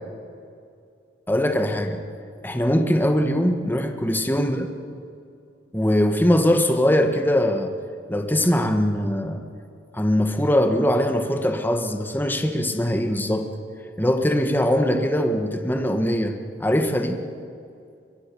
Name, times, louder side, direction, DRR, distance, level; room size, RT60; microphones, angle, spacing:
voice 1, 1.3-2.0 2.4-4.7 5.7-7.7 8.1-9.4 9.9-13.5 14.0-17.2, equal, 10° left, 5 dB, 1.4 m, -21 dB
23.5 x 22.0 x 6.9 m, 2.4 s
head